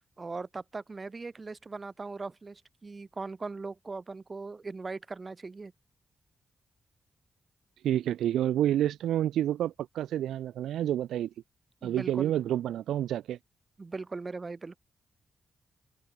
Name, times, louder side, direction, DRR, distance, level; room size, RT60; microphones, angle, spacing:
voice 1, 0.2-5.7 11.8-12.3 13.8-14.8, right 3 dB, 40° right, 2.1 m, -39 dB
voice 2, 7.8-11.3 11.8-13.4, right 11 dB, 85° right, 0.9 m, -29 dB
open air
supercardioid pair, 45°, 0 cm